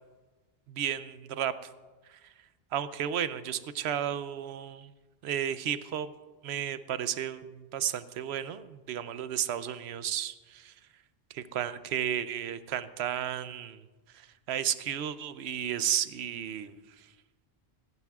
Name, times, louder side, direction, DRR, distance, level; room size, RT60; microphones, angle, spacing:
voice 1, 0.7-1.5 2.1-2.3 2.7-4.9 5.2-6.1 6.4-10.7 11.3-13.8 14.1-17.1, right 10 dB, 80° right, 13 dB, 0.8 m, -33 dB
17.0 x 15.0 x 2.4 m, 1.3 s
omnidirectional pair, 1.1 m